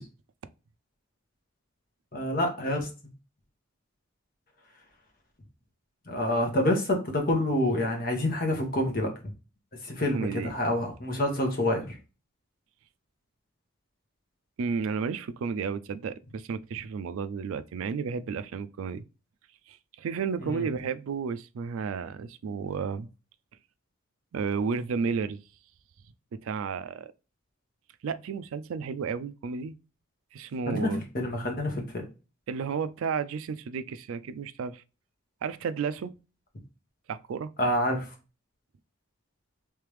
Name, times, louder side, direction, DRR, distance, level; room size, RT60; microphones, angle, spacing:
voice 1, 2.1-2.9 6.1-9.1 9.8-12.0 20.4-20.7 30.7-32.0 37.6-38.1, left 1 dB, 45° left, 1.1 m, -27 dB
voice 2, 10.1-10.5 14.6-19.0 19.7-23.1 24.3-25.4 26.4-27.1 28.0-29.7 30.3-31.0 32.5-34.8 35.4-36.1 37.1-37.5, right 5 dB, 75° right, 0.3 m, -32 dB
3.3 x 3.3 x 3.1 m
head